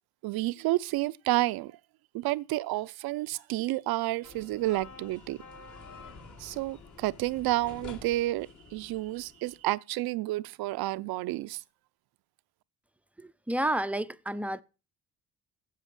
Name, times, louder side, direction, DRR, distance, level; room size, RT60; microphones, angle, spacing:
voice 1, 0.2-1.7 2.1-5.4 6.4-11.6, right 17 dB, 80° right, 0.5 m, -30 dB
sound 1, 4.2-9.7, left 4 dB, 55° left, 2.1 m, -49 dB
voice 2, 13.2-14.6, right 1 dB, 5° right, 0.4 m, -30 dB
8.3 x 7.6 x 5.8 m
cardioid pair, 95°, 37 cm